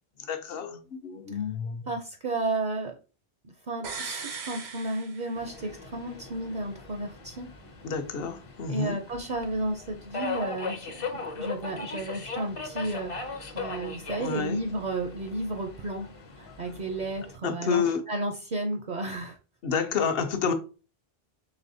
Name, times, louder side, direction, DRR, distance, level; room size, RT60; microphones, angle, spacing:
voice 1, 0.2-1.9 7.8-9.0 14.2-14.6 17.4-18.0 19.6-20.5, left 6 dB, 70° left, 0.9 m, -29 dB
voice 2, 1.9-2.9 3.4-7.5 8.7-16.1 16.4-19.4, right 2 dB, 55° right, 0.6 m, -33 dB
sound 1, 3.8-5.8 6.1-6.2, right 5 dB, 90° right, 1.1 m, -38 dB
Subway metro underground, 5.3-17.4, left 3 dB, 40° left, 0.5 m, -39 dB
4.1 x 3.3 x 2.6 m
omnidirectional pair, 1.1 m